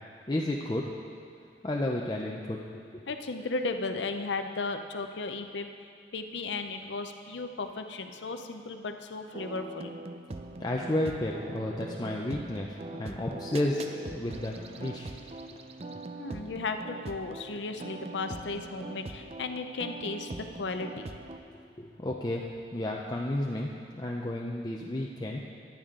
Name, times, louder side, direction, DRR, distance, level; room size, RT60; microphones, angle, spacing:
voice 1, 0.3-0.8 1.6-2.6 2.9-3.0 10.6-12.7 12.9-13.9 14.1-15.1 21.8-22.5 22.7-23.7 24.0-25.4, left 1 dB, 25° left, -2 dB, 0.5 m, -31 dB
voice 2, 3.1-5.7 6.1-9.9 16.2-21.1, left 3 dB, 90° left, 7 dB, 0.6 m, -35 dB
sound 1, 9.3-21.4, right 2 dB, 35° right, 0.5 m, -42 dB
14.0 x 10.5 x 3.7 m, 2.3 s
head